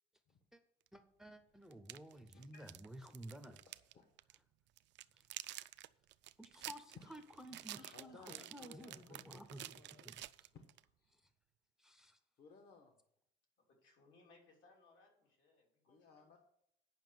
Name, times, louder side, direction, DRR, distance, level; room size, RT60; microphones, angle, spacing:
voice 1, 0.9-3.6 5.1-5.3 6.4-10.5 11.1-11.2 11.8-12.2, right 1 dB, 5° right, 9 dB, 0.5 m, -54 dB
sound 1, 0.9-1.0 1.7-3.9 4.2-4.4 4.8-10.8, right 15 dB, 70° right, 0.4 m, -50 dB
voice 2, 2.3-2.7 3.0-3.2 3.7-4.0 7.0-7.1 7.5-10.1 10.5-10.6 11.0-11.1 12.4-12.9 15.9-16.4, left 4 dB, 55° left, 4 dB, 1.2 m, -60 dB
voice 3, 13.6-16.3, left 3 dB, 80° left, 0 dB, 3.1 m, -67 dB
9.2 x 5.6 x 7.6 m, 0.73 s
cardioid pair, 175°, 19 cm